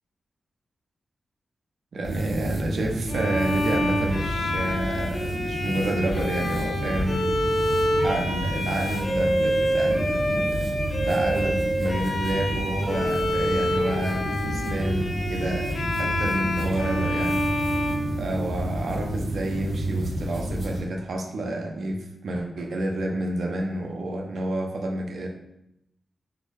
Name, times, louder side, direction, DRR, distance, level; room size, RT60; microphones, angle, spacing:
voice 1, 1.9-7.5 8.0-10.8 11.0-17.7 18.2-25.3, right 1 dB, 70° right, 2 dB, 0.5 m, -29 dB
sound 1, 2.0-20.8, right 1 dB, 90° right, 0.9 m, -30 dB
Bowed string instrument, 3.1-18.8, equal, 60° left, 0.7 m, -27 dB
3.8 x 2.0 x 3.1 m, 0.82 s
wide cardioid pair, 150°, 0 cm